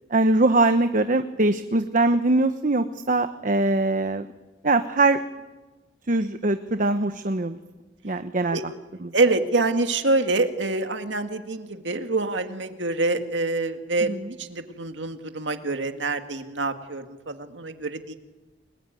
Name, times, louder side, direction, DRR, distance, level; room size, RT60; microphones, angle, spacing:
voice 1, 0.1-4.3 4.6-5.2 6.1-7.6 8.0-8.6 9.0-9.1 14.1-14.3, right 2 dB, 45° right, 9 dB, 1.1 m, -22 dB
voice 2, 9.1-14.1 14.4-18.1, right 3 dB, 75° right, 7 dB, 2.1 m, -26 dB
30.0 x 21.0 x 9.2 m, 1.2 s
head